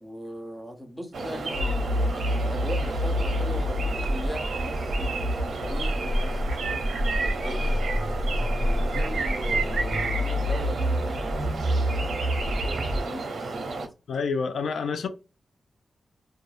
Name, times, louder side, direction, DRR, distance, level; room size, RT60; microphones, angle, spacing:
voice 1, 0.0-7.8 8.6-13.7, equal, 5° left, 0.6 m, -40 dB
sound 1, 1.1-13.9, right 3 dB, 70° right, 0.6 m, -32 dB
sound 2, 1.5-13.0, left 1 dB, 35° right, 0.8 m, -28 dB
voice 2, 14.1-15.1, left 5 dB, 85° left, 0.4 m, -28 dB
2.6 x 2.2 x 3.1 m
wide cardioid pair, 175°, 0 cm